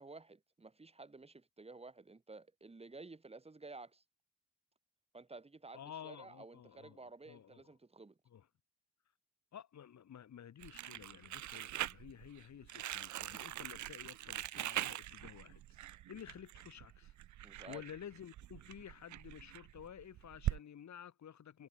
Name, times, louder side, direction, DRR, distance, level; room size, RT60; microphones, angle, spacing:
voice 1, 0.0-4.0 5.1-8.2 17.4-17.8, right 3 dB, 20° right, 2.6 m, -53 dB
voice 2, 5.7-7.6 8.3-8.5 9.5-21.7, left 9 dB, 70° left, 3.8 m, -52 dB
Crumpling crinkling, 10.6-20.6, right 13 dB, 80° right, 0.6 m, -43 dB
cardioid pair, 115°, 29 cm